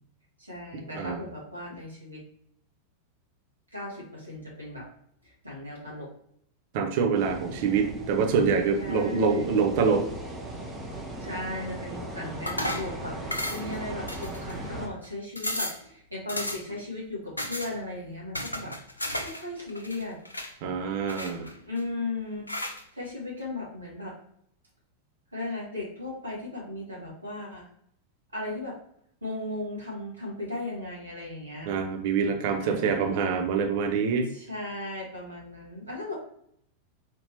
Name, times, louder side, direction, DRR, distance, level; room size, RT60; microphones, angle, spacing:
voice 1, 0.4-2.2 3.7-4.8 5.2-6.1 8.8-9.7 11.2-18.7 19.0-20.2 21.6-22.5 22.9-24.1 25.3-27.7 28.3-28.7 29.2-31.7 32.6-33.3 34.3-36.1, left 2 dB, 85° right, -4 dB, 1.5 m, -36 dB
voice 2, 6.7-10.0 20.6-21.5 31.7-34.3, right 5 dB, 50° right, 3 dB, 0.7 m, -25 dB
sound 1, 7.1-14.9, right 1 dB, 15° right, 0.9 m, -38 dB
sound 2, 12.5-12.9 13.3-13.8 14.1-14.7 15.0-15.1 15.4-15.8 16.3-16.8 17.4-17.7 18.3-19.4 19.7-20.5 21.1-21.8 22.5-22.8, left 1 dB, 85° left, 0.5 m, -33 dB
4.3 x 2.9 x 2.9 m, 0.68 s
figure-of-eight pair, 90°, 0 cm